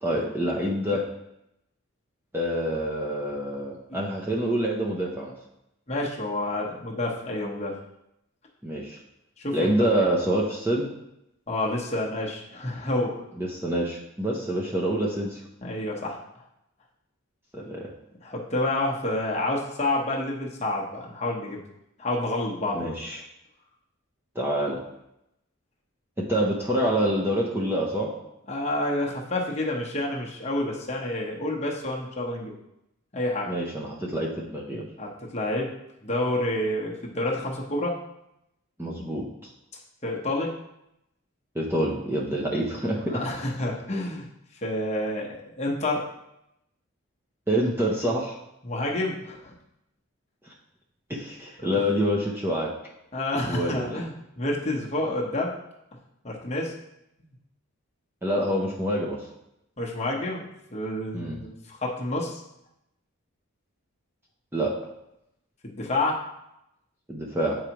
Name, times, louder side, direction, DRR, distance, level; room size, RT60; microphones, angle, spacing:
voice 1, 0.0-1.0 2.3-5.3 8.6-9.0 9.5-10.9 13.4-15.4 17.5-17.9 22.7-23.2 24.4-24.8 26.3-28.1 33.5-34.9 38.8-39.2 41.5-43.2 47.5-48.4 50.4-50.5 51.1-52.7 53.5-54.0 58.2-59.3 61.1-61.4 64.5-64.7 67.1-67.6, right 1 dB, 10° right, -2 dB, 0.6 m, -26 dB
voice 2, 5.9-7.8 9.4-10.1 11.5-13.2 15.6-16.2 18.2-21.6 22.0-22.9 28.5-32.5 33.1-33.5 35.0-35.7 36.0-37.9 40.0-40.5 42.9-44.3 44.6-45.3 45.6-46.0 48.6-49.5 51.6-51.8 53.1-55.5 56.2-56.7 59.8-62.4 65.6-66.2, left 1 dB, 30° left, -2 dB, 0.9 m, -29 dB
8.0 x 4.8 x 2.9 m, 0.83 s
head